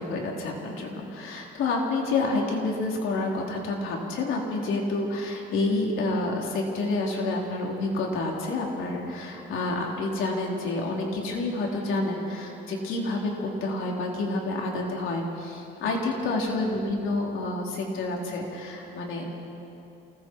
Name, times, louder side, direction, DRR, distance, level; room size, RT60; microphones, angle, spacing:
voice 1, 0.0-19.3, left 2 dB, 85° left, -1 dB, 3.9 m, -29 dB
28.0 x 20.5 x 4.7 m, 3.0 s
cardioid pair, 90°, 20 cm